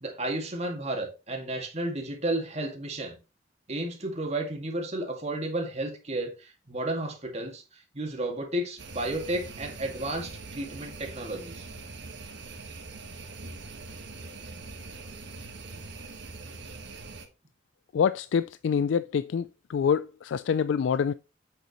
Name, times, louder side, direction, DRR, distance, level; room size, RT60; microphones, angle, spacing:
voice 1, 0.0-3.2 3.7-11.7, right 1 dB, 35° right, 2.0 m, -32 dB
sound 1, 8.8-17.3, right 3 dB, 65° right, 1.5 m, -43 dB
voice 2, 17.9-21.1, left 7 dB, 65° left, 0.3 m, -26 dB
7.9 x 6.7 x 3.0 m
head